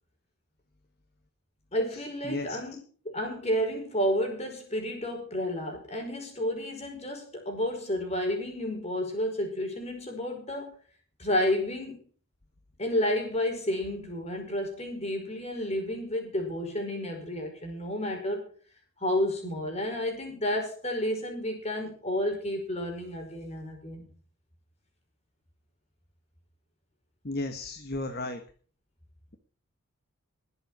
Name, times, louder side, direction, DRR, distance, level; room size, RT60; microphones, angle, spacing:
voice 1, 1.7-2.7 3.0-10.8 11.2-12.0 12.8-18.5 19.0-24.0, left 1 dB, 30° left, 3 dB, 5.1 m, -31 dB
voice 2, 2.3-2.6 27.2-28.4, left 2 dB, 45° left, 7 dB, 1.4 m, -33 dB
20.0 x 8.0 x 6.0 m, 0.42 s
head